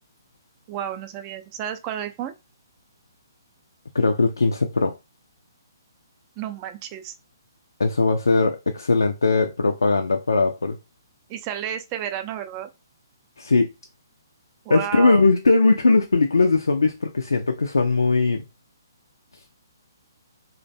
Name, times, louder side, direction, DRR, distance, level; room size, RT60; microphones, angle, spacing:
voice 1, 0.7-2.3 6.4-7.1 11.3-12.7 14.7-15.2, right 10 dB, 30° right, 0.4 m, -31 dB
voice 2, 3.9-4.9 7.8-10.8 13.4-13.7 14.7-18.4, left 3 dB, 80° left, 0.3 m, -19 dB
2.5 x 2.1 x 2.6 m
figure-of-eight pair, 130°, 2 cm